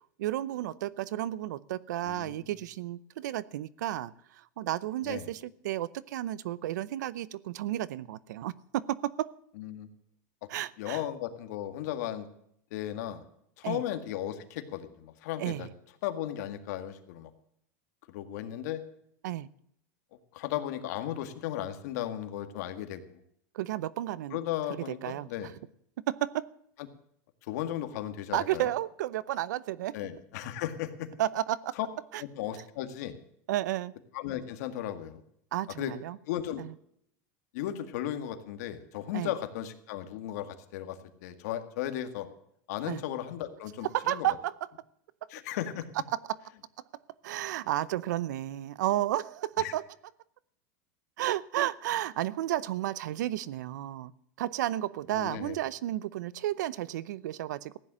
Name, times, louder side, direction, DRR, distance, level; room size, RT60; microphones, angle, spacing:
voice 1, 0.0-9.3 10.5-11.0 13.6-13.8 15.4-15.7 19.2-19.5 23.5-24.4 24.9-25.5 26.1-26.5 28.3-30.0 31.2-31.7 32.1-32.2 33.5-33.9 35.5-36.2 36.6-36.7 39.1-39.3 42.9-43.0 43.8-44.5 45.2-45.3 46.1-46.4 47.2-49.8 51.2-54.1 54.4-57.8, right 13 dB, 85° right, 0.7 m, -32 dB
voice 2, 2.1-2.4 5.0-5.3 9.6-9.9 10.8-12.3 12.7-13.2 13.6-15.7 16.0-17.3 18.1-18.8 20.3-23.2 24.3-25.5 27.4-28.7 29.9-31.1 31.8-31.9 32.4-33.1 34.1-35.2 35.8-35.9 36.3-36.6 37.5-42.3 42.7-44.3 45.3-45.9 49.6-49.7 55.1-55.6, left 12 dB, 65° left, 2.0 m, -35 dB
15.5 x 10.0 x 6.2 m
supercardioid pair, 145°, 9 cm